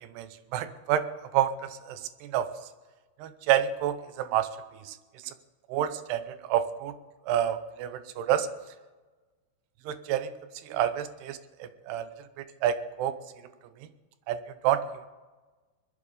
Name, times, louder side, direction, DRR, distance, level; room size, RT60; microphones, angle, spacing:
voice 1, 0.2-1.1 1.3-2.5 3.2-4.5 4.8-5.0 5.2-5.3 5.7-6.9 7.3-8.5 9.9-10.3 10.7-12.1 12.4-13.1 14.3-15.1, right 11 dB, 75° right, 12 dB, 2.5 m, -29 dB
21.5 x 12.5 x 5.0 m, 1.3 s
omnidirectional pair, 5.3 m